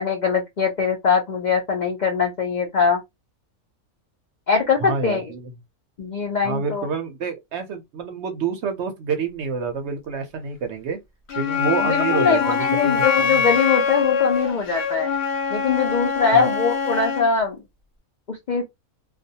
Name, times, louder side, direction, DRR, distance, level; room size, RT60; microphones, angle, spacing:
voice 1, 0.0-3.0 4.5-5.2 6.0-6.9 11.8-15.1 15.5-17.6 18.3-18.7, left 5 dB, 85° left, 0.4 m, -22 dB
voice 2, 4.8-5.5 6.4-11.0 11.4-13.4 16.3-16.5, right 5 dB, 65° right, 0.7 m, -28 dB
Wind instrument woodwind instrument, 11.3-17.3, left 6 dB, 55° left, 0.8 m, -23 dB
2.3 x 2.2 x 2.7 m
omnidirectional pair, 1.5 m